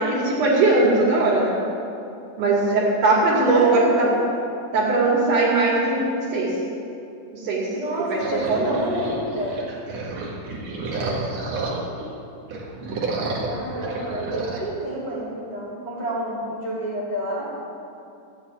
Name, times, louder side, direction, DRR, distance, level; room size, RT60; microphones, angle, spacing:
voice 1, 0.0-1.5 2.4-4.1 4.7-6.5 7.3-7.7 8.1-8.2 8.5-8.8 11.0-11.1, right 2 dB, 75° right, -5 dB, 3.9 m, -20 dB
voice 2, 3.4-4.3 7.7-9.6 13.4-17.4, right 1 dB, 15° right, -11 dB, 3.0 m, -28 dB
sound 1, 8.2-12.1 12.4-14.6, right 3 dB, 60° right, 2.8 m, -30 dB
14.0 x 8.1 x 8.8 m, 2.6 s
omnidirectional pair, 3.6 m